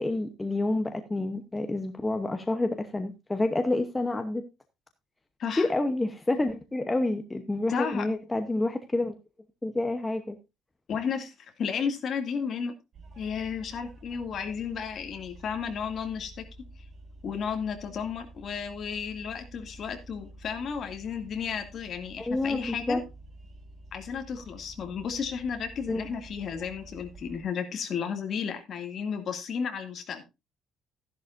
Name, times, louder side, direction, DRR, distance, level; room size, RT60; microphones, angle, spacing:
voice 1, 0.0-4.4 5.6-9.2 9.6-10.4 22.2-23.0 25.9-26.1, left 2 dB, 10° left, 7 dB, 0.9 m, -28 dB
voice 2, 7.7-8.1 10.9-12.7 13.2-16.4 17.2-23.0 23.9-30.2, left 6 dB, 40° left, 5 dB, 2.3 m, -33 dB
sound 1, 12.9-27.4, right 1 dB, 40° right, 1.5 m, -49 dB
14.0 x 11.0 x 2.6 m, 0.25 s
cardioid pair, 165°, 0 cm